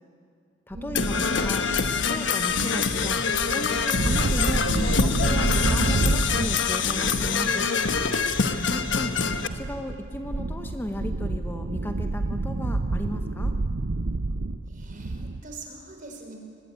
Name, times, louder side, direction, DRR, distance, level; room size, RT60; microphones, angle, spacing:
voice 1, 0.7-1.7 2.0-3.2 3.5-4.7 5.0-7.7 8.6-9.1 9.5-13.5, left 1 dB, 10° left, 5 dB, 0.9 m, -35 dB
sound 1, 0.7-15.4, right 2 dB, 65° right, 0.7 m, -29 dB
Percussion / Brass instrument, 0.9-9.5, left 5 dB, 80° left, 1.2 m, -25 dB
voice 2, 8.7-9.2 14.7-16.4, right 2 dB, 45° right, 2 dB, 5.1 m, -43 dB
24.0 x 21.5 x 9.4 m, 2.4 s
head